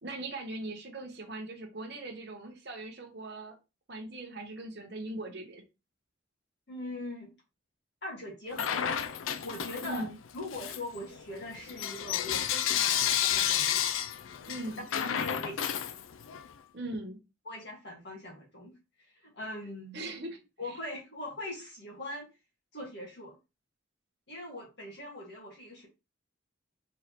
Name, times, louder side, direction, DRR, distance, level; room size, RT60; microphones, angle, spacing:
voice 1, 0.0-3.6 3.9-5.6 9.8-10.2 14.4-14.8 16.7-17.2 19.9-20.4 20.7-20.8, right 2 dB, 55° right, 0.9 m, -40 dB
voice 2, 6.7-7.3 8.0-9.0 9.4-10.1 10.3-13.9 14.9-16.0 17.5-18.7 19.0-20.0 20.6-22.3 22.7-23.4 24.3-25.9, left 1 dB, 60° left, 1.8 m, -41 dB
Bell / Coin (dropping), 8.5-10.1 10.5-16.5, left 9 dB, 90° left, 0.4 m, -31 dB
4.0 x 3.6 x 3.0 m
head